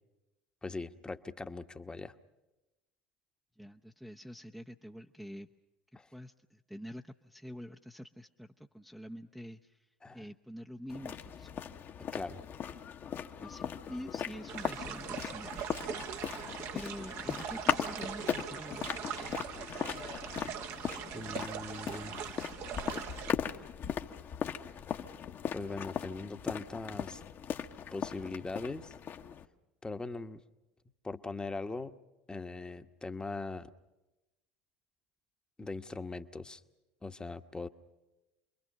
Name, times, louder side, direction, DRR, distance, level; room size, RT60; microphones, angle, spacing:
voice 1, 0.6-2.1 5.9-6.1 10.0-10.2 12.0-12.4 21.1-22.4 25.5-27.2 27.9-28.9 29.8-30.4 31.0-32.0 32.3-33.7 35.6-36.6 37.0-37.7, left 3 dB, 15° left, 9 dB, 1.1 m, -40 dB
voice 2, 3.6-5.5 6.1-11.5 13.3-15.6 16.7-18.9 19.2-19.5, equal, ahead, 3 dB, 0.8 m, -47 dB
sound 1, 10.9-29.5, left 8 dB, 40° left, 1.1 m, -38 dB
sound 2, 14.5-23.3, right 9 dB, 55° right, 1.1 m, -41 dB
28.0 x 22.5 x 6.5 m, 1.0 s
hypercardioid pair, 70°, 5 cm